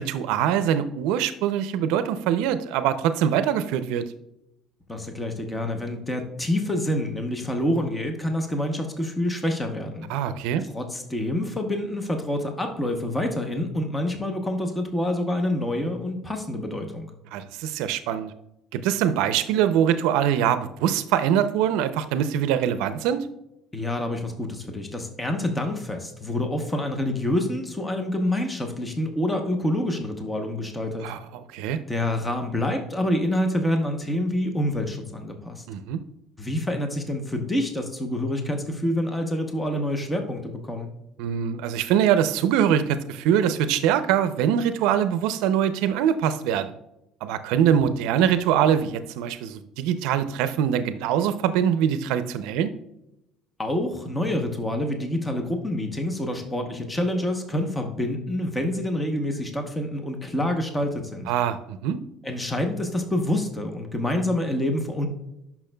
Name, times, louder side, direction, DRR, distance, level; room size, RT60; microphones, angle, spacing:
voice 1, 0.0-4.1 10.1-10.6 17.3-18.3 18.7-23.3 31.0-31.8 35.7-36.0 41.2-46.7 47.2-52.7 61.3-62.0, right 9 dB, 85° right, 11 dB, 0.4 m, -23 dB
voice 2, 4.9-10.1 10.6-17.1 23.7-31.1 31.9-35.6 36.4-40.9 53.6-61.3 62.2-65.1, left 1 dB, 10° left, 4 dB, 0.8 m, -27 dB
10.0 x 5.9 x 2.2 m, 0.85 s
cardioid pair, 150°, 0 cm